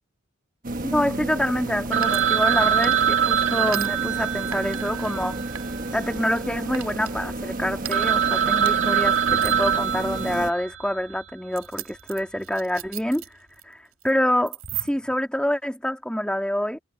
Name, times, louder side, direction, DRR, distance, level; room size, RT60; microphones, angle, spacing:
sound 1, 0.6-10.5, right 2 dB, 40° right, 1.3 m, -31 dB
voice 1, 0.8-5.4 5.9-13.4 13.6-16.8, equal, 5° left, 2.2 m, -26 dB
Telephone, 1.9-6.3 6.5-6.6 7.2-7.3 7.6-7.7 7.9-10.9, right 9 dB, 60° right, 1.7 m, -23 dB
sound 2, 2.0-3.2 3.7-3.9 4.5-5.1 5.5-6.4 6.7-7.1 7.8-8.0 8.6-8.7 9.3-9.7 10.2-10.3 11.5-13.6 13.9-14.1 14.5-15.1, right 11 dB, 90° right, 6.4 m, -36 dB
head